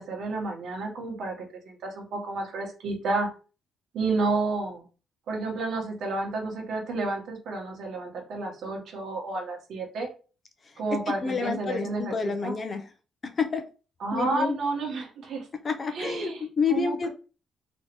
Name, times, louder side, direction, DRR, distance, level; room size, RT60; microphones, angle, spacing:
voice 1, 0.0-3.3 3.9-4.8 5.3-10.1 10.8-12.5 14.0-15.5 15.9-16.4 16.7-17.1, right 3 dB, 70° right, 1 dB, 1.2 m, -31 dB
voice 2, 11.1-12.9 13.2-13.6 14.1-14.6 15.6-17.1, left 5 dB, 40° left, 6 dB, 0.5 m, -29 dB
3.1 x 2.7 x 2.9 m, 0.35 s
cardioid pair, 90°, 0 cm